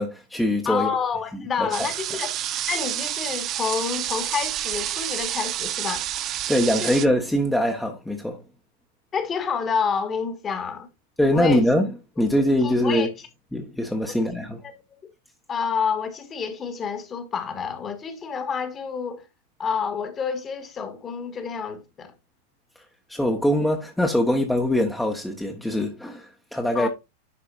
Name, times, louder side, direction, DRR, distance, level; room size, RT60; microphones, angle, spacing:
voice 1, 0.0-0.9 1.6-1.7 6.5-8.4 11.2-11.9 12.2-13.1 13.5-14.6 23.1-26.9, left 1 dB, 5° left, 1.1 m, -22 dB
voice 2, 0.6-2.4 2.7-6.1 6.8-7.0 9.1-10.9 11.3-11.7 12.6-13.1 14.1-14.2 14.6-14.8 15.5-19.3 19.6-22.1 26.7-26.9, left 6 dB, 25° left, 1.6 m, -28 dB
sound 1, 1.7-7.1, right 12 dB, 35° right, 0.6 m, -29 dB
11.0 x 4.9 x 2.5 m
figure-of-eight pair, 90°, 0 cm